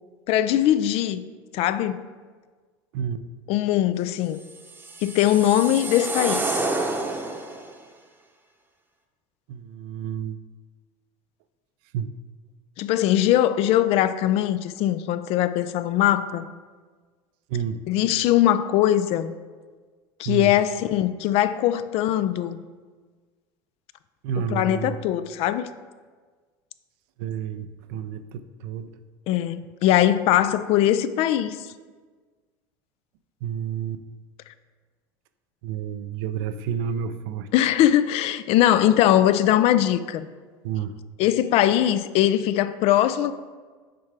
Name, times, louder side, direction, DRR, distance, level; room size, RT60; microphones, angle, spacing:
voice 1, 0.3-1.3 1.5-2.0 3.5-4.4 5.0-6.6 12.8-16.5 17.9-19.3 20.2-22.6 24.4-25.7 29.3-31.6 37.5-40.3 41.2-43.3, left 12 dB, 55° left, 0.4 m, -21 dB
sound 1, 4.5-7.7, right 2 dB, 15° right, 0.8 m, -29 dB
voice 2, 9.5-10.4 11.9-12.1 17.5-17.8 20.3-20.5 24.2-25.0 27.2-28.9 33.4-34.0 35.6-37.5 40.6-41.0, right 8 dB, 70° right, 0.4 m, -30 dB
7.5 x 4.7 x 3.4 m
hypercardioid pair, 85°, 12 cm